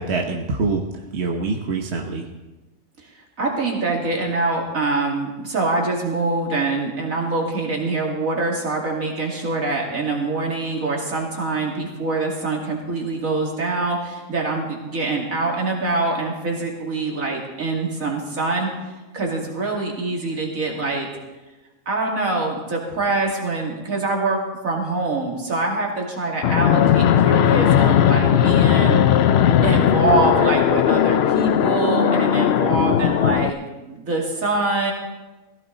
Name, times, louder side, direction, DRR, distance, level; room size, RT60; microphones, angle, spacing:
voice 1, 0.0-2.3, right 3 dB, 50° right, 1 dB, 1.4 m, -25 dB
voice 2, 3.4-18.7 19.1-21.1 21.9-29.0 29.6-34.9, right 3 dB, 70° right, -1 dB, 3.1 m, -24 dB
Fixed-wing aircraft airplane, 26.4-33.5, left 9 dB, 60° left, 0.7 m, -17 dB
17.0 x 15.5 x 4.1 m, 1.1 s
omnidirectional pair, 1.5 m